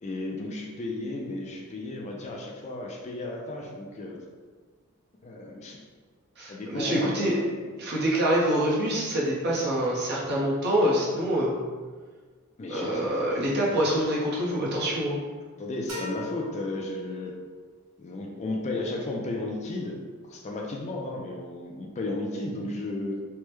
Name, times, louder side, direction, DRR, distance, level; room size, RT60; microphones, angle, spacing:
voice 1, 0.0-4.2 5.2-5.8 6.5-7.6 12.6-13.5 15.6-17.4 18.0-23.2, left 2 dB, 30° left, 0 dB, 0.3 m, -34 dB
voice 2, 6.4-7.4 7.8-11.6 12.7-15.2, equal, 50° right, -5 dB, 0.8 m, -25 dB
sound 1, 15.9-17.6, left 1 dB, 90° right, 1.0 m, -39 dB
3.3 x 2.1 x 3.0 m, 1.5 s
head